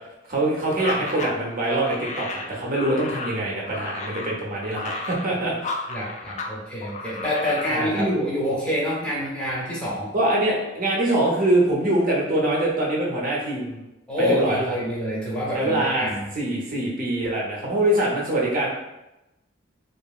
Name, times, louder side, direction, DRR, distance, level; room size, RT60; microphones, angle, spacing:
voice 1, 0.3-5.7 7.7-8.0 10.1-13.8 14.2-14.6 15.5-18.7, right 1 dB, 45° right, -3 dB, 0.6 m, -24 dB
sound 1, 0.7-6.5 6.8-7.8, left 3 dB, 40° left, 0.3 m, -33 dB
voice 2, 5.9-10.1 14.1-16.2, equal, 5° left, -7 dB, 0.7 m, -26 dB
2.8 x 2.4 x 2.3 m, 0.94 s
head